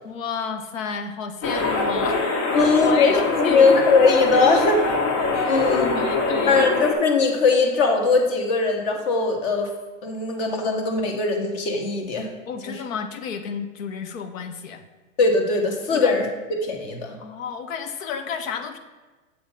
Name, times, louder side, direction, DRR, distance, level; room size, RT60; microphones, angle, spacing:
voice 1, 0.0-2.2 2.5-3.7 5.4-5.7 5.9-6.6 12.5-14.8 15.9-16.2 17.2-18.8, left 6 dB, 80° left, 8 dB, 0.8 m, -32 dB
sound 1, 1.4-6.9, left 3 dB, 60° left, 1.4 m, -23 dB
voice 2, 2.5-4.8 5.5-6.0 6.5-9.7 10.0-12.3 12.7-12.8 15.2-16.3 16.6-17.1, left 4 dB, 45° left, 3 dB, 1.2 m, -20 dB
7.0 x 3.4 x 5.5 m, 1.2 s
supercardioid pair, 140°, 39 cm